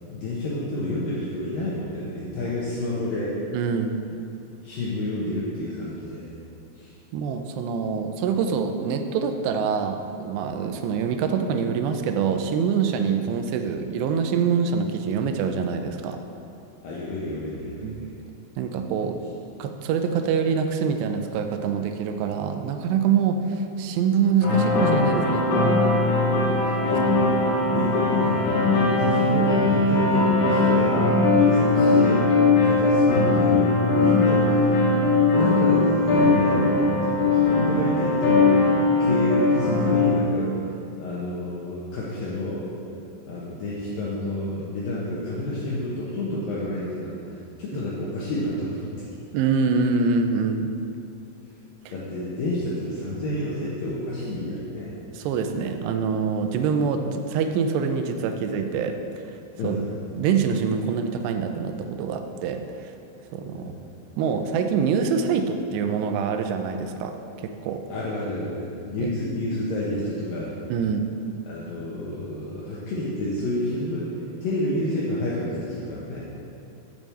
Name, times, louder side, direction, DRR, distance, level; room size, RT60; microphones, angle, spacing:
voice 1, 0.1-3.4 4.6-6.3 6.8-6.9 16.8-18.0 26.9-31.0 31.4-32.3 32.6-34.7 35.2-38.5 39.0-40.5 41.0-42.8 43.3-48.9 51.4-51.6 51.9-54.9 59.6-60.0 63.6-63.8 67.9-70.5 71.5-76.2, left 1 dB, 65° left, -6 dB, 2.5 m, -30 dB
voice 2, 3.5-4.0 7.1-16.2 17.8-18.1 18.6-19.2 19.6-25.5 27.7-27.8 31.3-31.5 47.7-47.8 49.3-50.7 55.1-59.2 59.6-59.8 60.2-62.9 63.3-63.7 64.2-67.2 67.4-67.8 69.0-69.1 70.7-71.0, right 6 dB, 80° right, 6 dB, 2.8 m, -25 dB
sound 1, 24.4-40.2, left 3 dB, 85° left, 3.9 m, -20 dB
7.8 x 7.0 x 7.3 m, 2.6 s
omnidirectional pair, 5.1 m